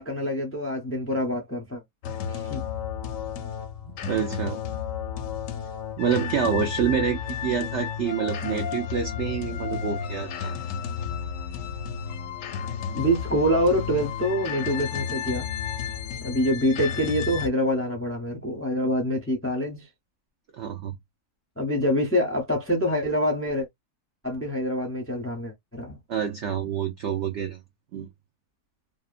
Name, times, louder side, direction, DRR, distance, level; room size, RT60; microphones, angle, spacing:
voice 1, 0.0-1.8 2.3-2.6 12.9-15.5 16.2-19.9 21.6-23.7 24.2-26.0, equal, 15° left, 0.4 m, -26 dB
sound 1, 2.0-17.5, left 7 dB, 70° left, 0.8 m, -32 dB
voice 2, 3.9-4.6 6.0-10.5 20.5-20.9 26.1-27.6 27.9-28.1, right 7 dB, 70° right, 0.6 m, -27 dB
2.8 x 2.1 x 2.4 m
omnidirectional pair, 1.8 m